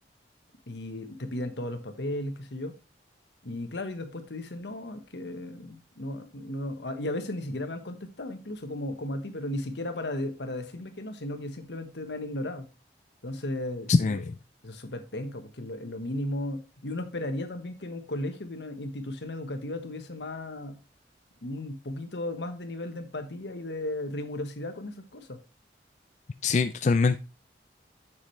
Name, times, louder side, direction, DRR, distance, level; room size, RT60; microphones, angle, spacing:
voice 1, 0.7-2.7 3.4-12.7 13.2-14.2 14.6-20.8 21.4-25.4, left 1 dB, 80° left, 8 dB, 1.3 m, -35 dB
voice 2, 13.9-14.3 26.4-27.2, left 4 dB, 40° left, 9 dB, 0.3 m, -23 dB
7.3 x 7.3 x 3.2 m, 0.28 s
head